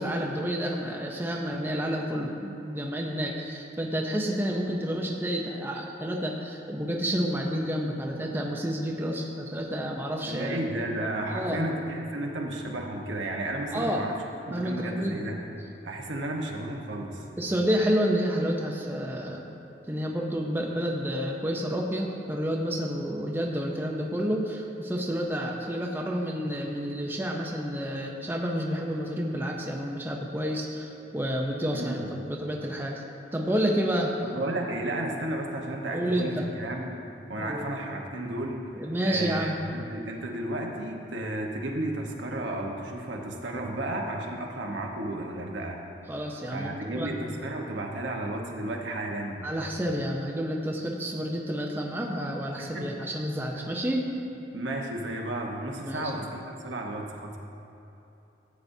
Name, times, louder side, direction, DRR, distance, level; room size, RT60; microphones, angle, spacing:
voice 1, 0.0-10.6 11.3-11.7 13.7-14.0 14.5-15.2 17.4-19.4 19.9-33.0 33.3-34.1 35.9-36.4 37.4-37.6 38.7-39.6 46.1-47.2 49.4-54.1 55.8-56.2, equal, 10° right, 0 dB, 0.6 m, -29 dB
voice 2, 10.2-14.2 14.5-15.4 15.8-17.2 31.7-32.1 34.2-37.0 37.3-38.7 39.0-45.8 46.5-49.5 52.6-53.0 53.6-53.7 54.5-57.4, right 1 dB, 85° right, 0 dB, 1.1 m, -33 dB
13.5 x 8.5 x 2.7 m, 2.9 s
head